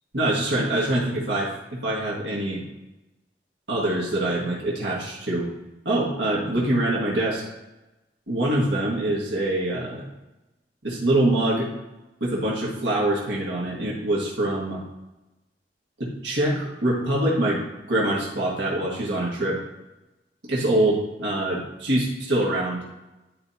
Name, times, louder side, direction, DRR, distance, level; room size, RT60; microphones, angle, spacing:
voice 1, 0.1-2.6 3.7-5.5 5.8-7.4 8.3-10.0 10.8-11.7 12.2-14.8 16.0-17.6 17.9-19.6 20.4-22.8, right 1 dB, 90° right, -5 dB, 1.8 m, -24 dB
12.0 x 4.5 x 2.8 m, 1.0 s
head